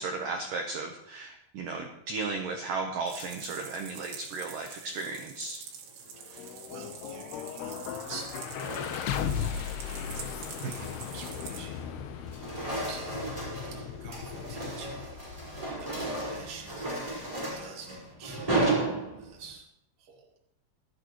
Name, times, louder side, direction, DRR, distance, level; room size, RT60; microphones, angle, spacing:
voice 1, 0.0-5.6 10.6-10.7, right 3 dB, 90° right, 3 dB, 1.9 m, -35 dB
sound 1, 3.1-11.6, right 7 dB, 70° right, 4.0 m, -46 dB
sound 2, 6.1-18.2, left 8 dB, 75° left, 2.7 m, -38 dB
sound 3, 6.1-6.6 7.7-9.3 9.7-10.0 10.5-11.9 12.2-19.5, right 2 dB, 5° right, 4.8 m, -34 dB
voice 2, 6.2-9.2 9.5-10.1 10.5-12.4 12.6-13.3 13.9-15.1 15.5-17.0 17.6-18.7 19.1-19.7 20.0-20.3, right 5 dB, 30° right, -2 dB, 2.1 m, -48 dB
24.0 x 9.0 x 3.1 m, 0.82 s
omnidirectional pair, 5.5 m